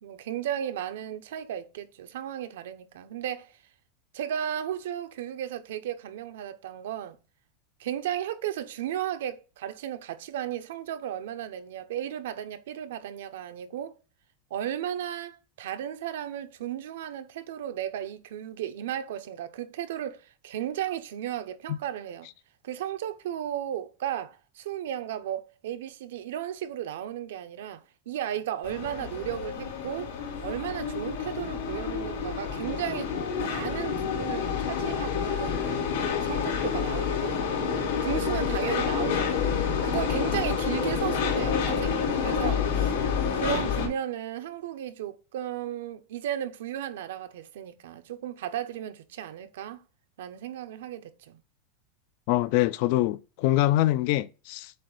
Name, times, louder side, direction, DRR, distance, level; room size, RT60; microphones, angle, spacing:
voice 1, 0.0-3.5 4.1-7.2 7.8-13.9 14.5-22.3 22.6-30.1 30.4-33.1 33.5-35.8 36.2-37.4 38.0-39.5 39.8-43.0 43.3-49.8 50.2-51.4, right 10 dB, 75° right, 0.8 m, -34 dB
sound 1, 28.6-43.9, left 6 dB, 85° left, 2.9 m, -28 dB
voice 2, 52.3-54.7, left 15 dB, 45° left, 0.4 m, -24 dB
7.6 x 2.6 x 4.9 m
supercardioid pair, 175°, 0 cm